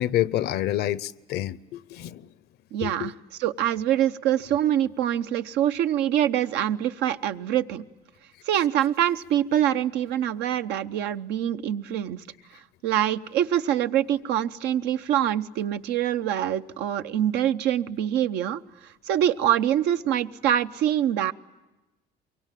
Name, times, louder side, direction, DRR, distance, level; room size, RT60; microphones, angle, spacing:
voice 1, 0.0-2.2 2.8-3.1, left 13 dB, 75° left, 0.8 m, -28 dB
voice 2, 2.7-3.1 3.4-7.8 8.4-12.2 12.8-18.6 19.0-21.3, right 11 dB, 85° right, 0.9 m, -24 dB
24.0 x 23.5 x 9.1 m
cardioid pair, 110°, 17 cm